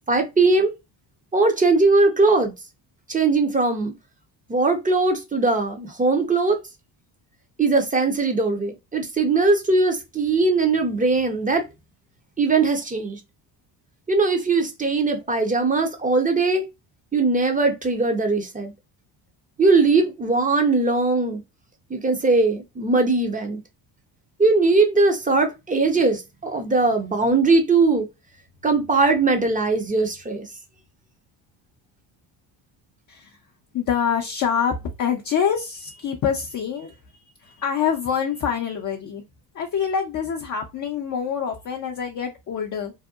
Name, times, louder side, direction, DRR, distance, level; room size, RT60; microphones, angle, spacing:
voice 1, 0.1-0.7 1.3-2.5 3.1-3.9 4.5-6.6 7.6-11.6 12.4-13.2 14.1-16.6 17.1-18.7 19.6-21.4 21.9-23.6 24.4-28.1 28.6-30.5, right 3 dB, 15° right, 0.6 m, -20 dB
voice 2, 33.1-33.4 33.7-37.0 37.4-39.2 39.5-42.9, left 7 dB, 40° left, 0.5 m, -25 dB
2.7 x 2.1 x 2.3 m
supercardioid pair, 75°, 49 cm